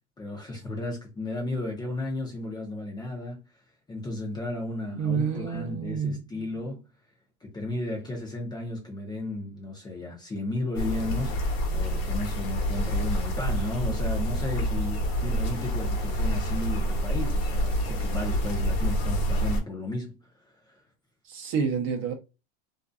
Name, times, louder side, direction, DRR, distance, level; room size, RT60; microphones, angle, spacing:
voice 1, 0.2-3.4 3.9-6.8 7.4-11.4 11.7-20.2 20.7-20.8, left 2 dB, 15° left, 0.6 m, -34 dB
voice 2, 4.9-6.2 21.2-22.1, right 6 dB, 40° right, 0.7 m, -28 dB
sound 1, 10.7-19.6, equal, 65° left, 1.0 m, -27 dB
2.6 x 2.3 x 2.3 m
supercardioid pair, 135°, 33 cm